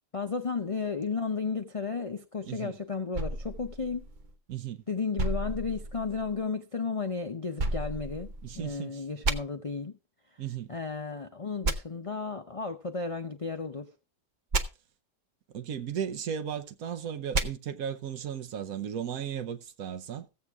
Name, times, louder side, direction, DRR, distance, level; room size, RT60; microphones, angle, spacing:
voice 1, 0.1-4.0 4.9-10.0 10.7-13.9, left 5 dB, 55° left, 0.3 m, -33 dB
voice 2, 2.4-2.8 4.5-4.8 8.4-9.0 10.4-10.8 15.5-20.3, right 8 dB, 65° right, 1.2 m, -35 dB
sound 1, 3.1-4.6 5.2-6.4 7.6-8.7 9.2-9.4 11.6-11.8 14.5-14.6 17.3-17.5, right 2 dB, 50° right, 0.6 m, -31 dB
15.0 x 7.6 x 3.5 m
omnidirectional pair, 1.8 m